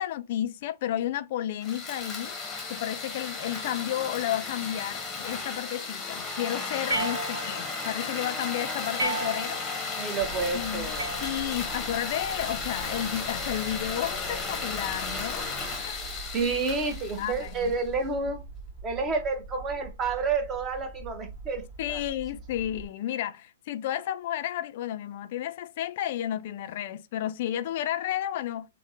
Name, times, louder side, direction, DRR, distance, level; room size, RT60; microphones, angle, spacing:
voice 1, 0.0-2.3 2.7-9.6 10.5-10.9 11.2-16.0 17.2-17.7 21.8-28.7, left 12 dB, 55° left, 0.3 m, -32 dB
sound 1, 1.6-17.8, left 4 dB, 15° left, 0.8 m, -34 dB
sound 2, 6.9-7.8 9.0-9.8 11.0-11.8, right 2 dB, 75° right, 0.9 m, -33 dB
voice 2, 10.0-11.1 16.3-18.4 18.8-22.0, right 4 dB, 25° right, 0.7 m, -30 dB
sound 3, 10.2-22.9, right 3 dB, 45° right, 1.3 m, -44 dB
3.3 x 2.0 x 2.6 m
hypercardioid pair, 130°, 0 cm